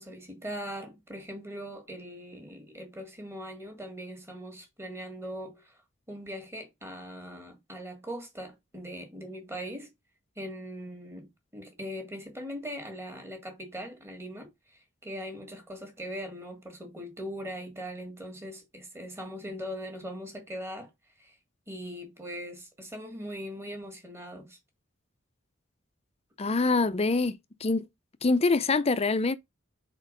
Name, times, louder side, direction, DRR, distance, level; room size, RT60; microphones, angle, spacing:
voice 1, 0.0-5.8 6.1-9.9 10.4-20.9 21.2-21.4 21.7-24.6, equal, 15° right, 1.7 m, -40 dB
voice 2, 26.4-27.8 28.2-29.3, left 3 dB, 30° left, 0.5 m, -25 dB
4.5 x 4.4 x 5.2 m
head